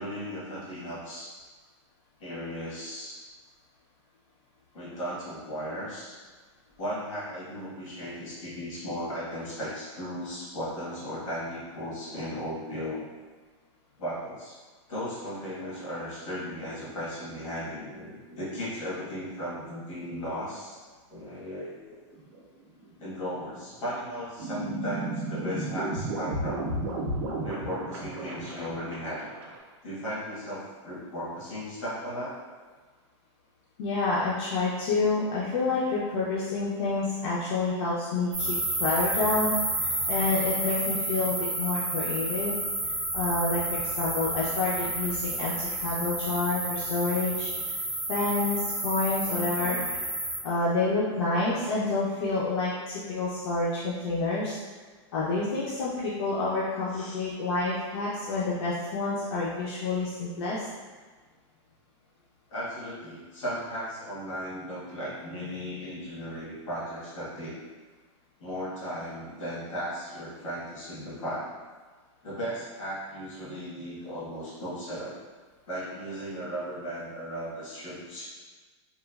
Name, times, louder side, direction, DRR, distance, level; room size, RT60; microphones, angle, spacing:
voice 1, 0.0-1.3 2.2-3.2 4.7-6.2 6.8-13.1 14.0-14.6 14.9-20.8 21.1-22.0 23.0-26.7 27.4-29.3 29.8-32.4 49.2-49.8 56.9-57.2 62.5-67.5 68.4-71.5 72.2-75.2 75.7-78.3, equal, 80° left, -8 dB, 1.2 m, -36 dB
sound 1, 22.1-22.4 22.8-23.1 23.5-23.6 24.0-24.1 24.4-29.6, right 1 dB, 60° right, 0.5 m, -33 dB
voice 2, 33.8-42.6 43.1-47.5 48.1-50.0 50.4-54.6 55.1-60.7, left 3 dB, 55° left, -7 dB, 0.4 m, -28 dB
sound 2, 38.3-50.4, right 1 dB, 10° right, 0.4 m, -30 dB
3.0 x 2.2 x 2.2 m, 1.4 s
supercardioid pair, 175°, 16 cm